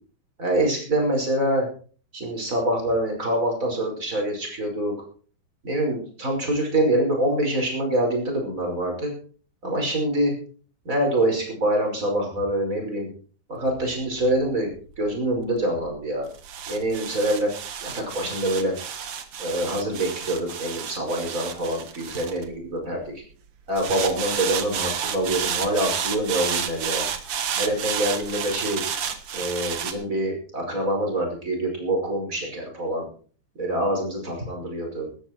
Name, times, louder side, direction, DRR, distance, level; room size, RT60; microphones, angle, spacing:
voice 1, 0.4-1.7 2.1-4.9 5.6-9.1 9.6-10.3 10.8-13.1 13.5-14.7 15.0-16.3 16.7-17.5 17.8-18.8 19.4-23.2 23.7-27.1 27.5-28.8 29.3-33.1 33.6-35.1, right 1 dB, 20° right, 1 dB, 5.6 m, -25 dB
sound 1, 13.6-23.1 23.8-29.9, right 8 dB, 55° right, 1.7 m, -31 dB
18.0 x 13.0 x 4.6 m, 0.43 s
omnidirectional pair, 4.3 m